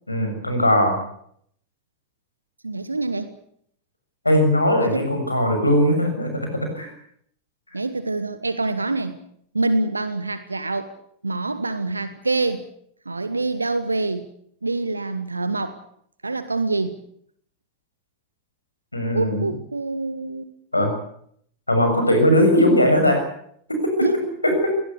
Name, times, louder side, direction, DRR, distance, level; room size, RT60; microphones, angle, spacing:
voice 1, 0.1-1.0 4.2-6.5 6.7-6.9 18.9-19.4 20.7-20.9 21.7-23.2 23.7-24.1 24.4-24.7, left 1 dB, 85° left, 5 dB, 6.9 m, -19 dB
voice 2, 2.6-3.4 4.8-5.1 7.7-9.2 9.5-10.9 11.2-12.6 13.0-14.3 14.6-15.8 16.2-17.0 19.1-20.5 24.0-24.2, right 3 dB, 80° right, 13 dB, 1.2 m, -25 dB
21.5 x 19.5 x 8.4 m, 0.66 s
figure-of-eight pair, 90°, 0 cm